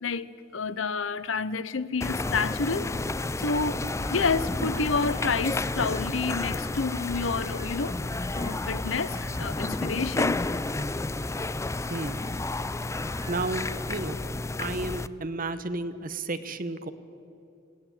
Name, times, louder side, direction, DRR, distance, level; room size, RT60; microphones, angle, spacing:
voice 1, 0.0-2.9 3.4-3.8 4.1-7.9 8.3-10.4, left 4 dB, 85° left, 16 dB, 0.8 m, -29 dB
sound 1, 2.0-15.1, left 2 dB, 15° left, 0.4 m, -31 dB
sound 2, 4.0-14.2, right 2 dB, 20° right, 1.9 m, -50 dB
voice 2, 11.7-12.2 13.3-14.2 14.6-16.9, right 2 dB, 45° right, 11 dB, 1.0 m, -32 dB
20.5 x 16.5 x 8.9 m, 2.7 s
head